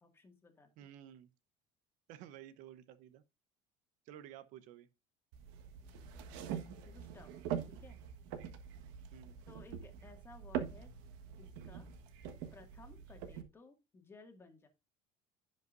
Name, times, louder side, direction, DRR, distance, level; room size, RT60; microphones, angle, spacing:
voice 1, 0.0-0.7 5.8-7.3 7.6-8.0 9.5-10.9 11.4-11.9 12.5-14.7, left 3 dB, 15° left, 2.0 m, -58 dB
voice 2, 0.8-1.3 2.1-3.2 4.0-4.9 9.1-9.4, right 11 dB, 65° right, 0.9 m, -53 dB
sound 1, 5.3-13.4, right 9 dB, 90° right, 1.4 m, -44 dB
16.0 x 5.5 x 2.6 m
cardioid pair, 160°, 14 cm